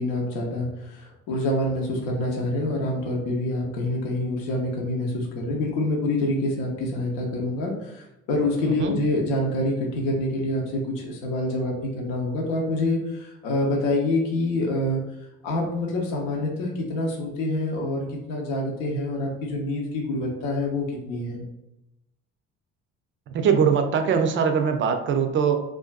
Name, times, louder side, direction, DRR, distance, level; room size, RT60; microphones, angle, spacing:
voice 1, 0.0-15.0 15.4-21.4, left 1 dB, 80° left, 0 dB, 0.7 m, -26 dB
voice 2, 23.3-25.6, right 6 dB, 35° right, 6 dB, 0.4 m, -22 dB
2.5 x 2.2 x 2.3 m, 0.87 s
hypercardioid pair, 65°, 37 cm